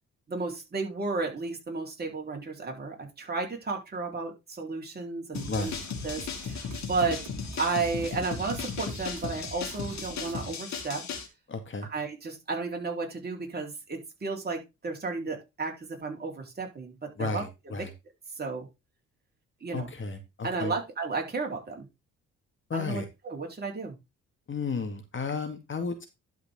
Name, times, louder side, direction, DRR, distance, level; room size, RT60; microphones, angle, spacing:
voice 1, 0.3-5.7 6.0-7.2 7.6-11.0 11.9-17.7 18.4-18.7 19.6-19.9 20.4-21.9 22.7-23.9, right 4 dB, 30° right, 1 dB, 4.3 m, -33 dB
sound 1, 5.3-11.3, left 6 dB, 65° left, 2.7 m, -36 dB
sound 2, 5.3-10.4, right 6 dB, 65° right, 2.1 m, -46 dB
voice 2, 5.5-5.8 11.5-11.9 17.2-17.9 19.7-20.7 22.7-23.1 24.5-26.1, left 4 dB, 40° left, 7 dB, 2.2 m, -33 dB
12.0 x 5.1 x 3.8 m, 0.24 s
cardioid pair, 90°, 30 cm